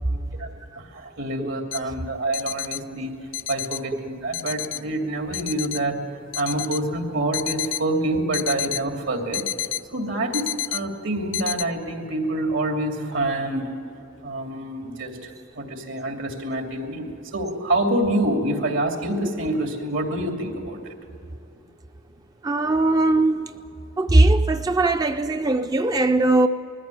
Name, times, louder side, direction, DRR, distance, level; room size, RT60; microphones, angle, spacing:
voice 1, 0.7-3.1 3.5-6.0 6.3-9.5 9.9-13.7 14.2-15.3 15.6-20.9, right 1 dB, 80° right, 2 dB, 2.7 m, -26 dB
sound 1, 1.7-1.8 2.3-2.8 3.3-3.8 4.3-4.8 5.3-5.8 6.3-6.8 7.3-7.8 8.3-8.8 9.3-9.8 10.3-10.8 11.3-11.6, left 12 dB, 75° left, 0.5 m, -29 dB
voice 2, 22.4-23.5 24.0-26.5, right 2 dB, 20° right, 8 dB, 0.4 m, -19 dB
21.0 x 14.5 x 9.1 m, 2.7 s
head